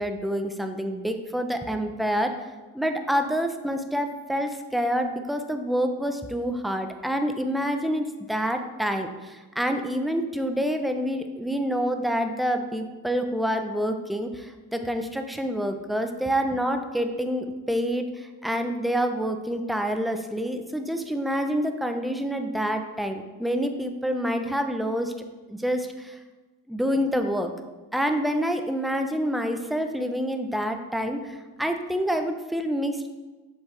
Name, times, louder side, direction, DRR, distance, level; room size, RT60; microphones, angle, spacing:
voice 1, 0.0-2.3 2.7-25.1 25.5-26.2 26.7-27.5 27.9-33.1, equal, ahead, 6 dB, 0.6 m, -27 dB
7.0 x 4.7 x 3.3 m, 1.2 s
supercardioid pair, 65°, 38 cm